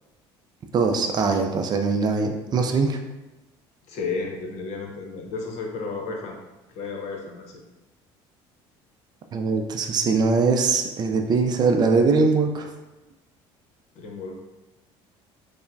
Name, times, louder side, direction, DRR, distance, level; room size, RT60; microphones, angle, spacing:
voice 1, 0.7-3.0 9.3-12.7, right 4 dB, 35° right, 5 dB, 0.4 m, -21 dB
voice 2, 3.9-6.4 6.7-7.5 13.9-14.4, left 4 dB, 70° left, 1 dB, 0.8 m, -32 dB
5.5 x 2.0 x 2.6 m, 1.1 s
cardioid pair, 120°, 12 cm